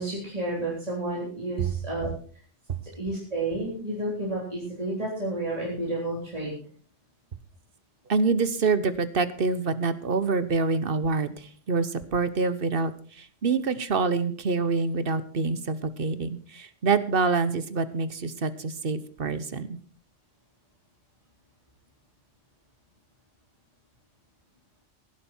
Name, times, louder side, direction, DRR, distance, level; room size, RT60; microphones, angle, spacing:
voice 1, 0.0-2.1 3.0-6.5, right 2 dB, 30° right, -5 dB, 4.0 m, -31 dB
voice 2, 8.1-19.8, right 4 dB, 50° right, 13 dB, 1.2 m, -26 dB
17.0 x 11.0 x 4.5 m, 0.44 s
omnidirectional pair, 1.3 m